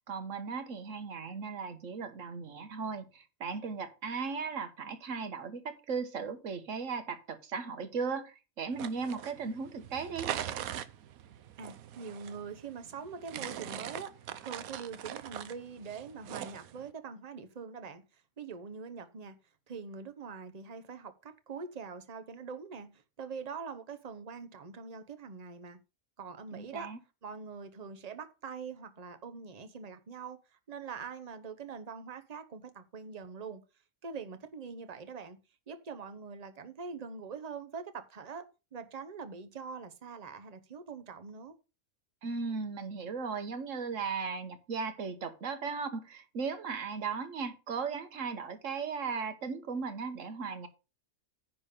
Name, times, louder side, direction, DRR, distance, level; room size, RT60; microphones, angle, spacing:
voice 1, 0.1-10.3 26.5-27.0 42.2-50.7, right 5 dB, 60° right, 1.5 m, -37 dB
sound 1, 8.7-16.9, right 10 dB, 80° right, 1.1 m, -42 dB
voice 2, 11.6-18.0 18.4-19.4 19.7-22.9 23.2-25.8 26.2-26.9 27.2-30.4 30.7-33.6 34.0-35.4 35.7-38.4 38.7-41.6, right 5 dB, 30° right, 0.9 m, -43 dB
10.0 x 3.9 x 6.6 m
omnidirectional pair, 1.5 m